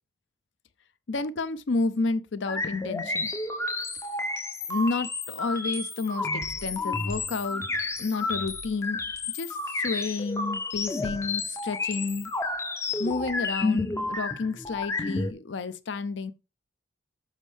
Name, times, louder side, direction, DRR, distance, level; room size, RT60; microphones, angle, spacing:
voice 1, 1.1-3.3 4.7-7.6 8.0-9.0 9.3-12.3 13.0-16.3, left 3 dB, 65° left, 0.5 m, -30 dB
sound 1, 2.5-15.3, left 3 dB, 15° left, 0.5 m, -31 dB
7.3 x 6.1 x 3.3 m
head